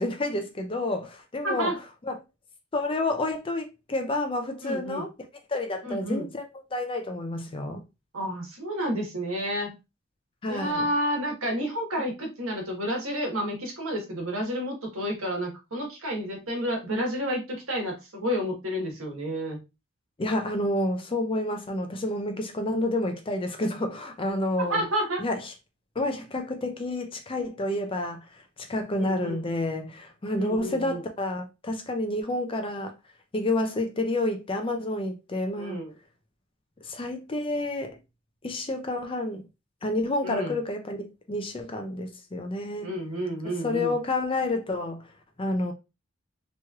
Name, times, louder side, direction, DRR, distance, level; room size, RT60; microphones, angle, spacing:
voice 1, 0.0-1.7 2.0-2.2 2.7-5.1 5.5-7.8 10.4-10.8 20.2-24.8 25.2-25.5 26.0-32.9 33.3-35.8 36.8-37.9 38.4-39.4 39.8-42.9 43.6-45.0 45.4-45.7, left 2 dB, 25° left, 0.4 m, -29 dB
voice 2, 1.4-1.7 4.6-5.1 5.8-6.3 8.1-9.7 10.5-19.6 24.6-25.2 29.0-29.4 30.4-31.0 35.6-35.9 40.2-40.6 42.8-44.0, equal, 80° right, 1.2 m, -30 dB
3.1 x 3.0 x 2.3 m
head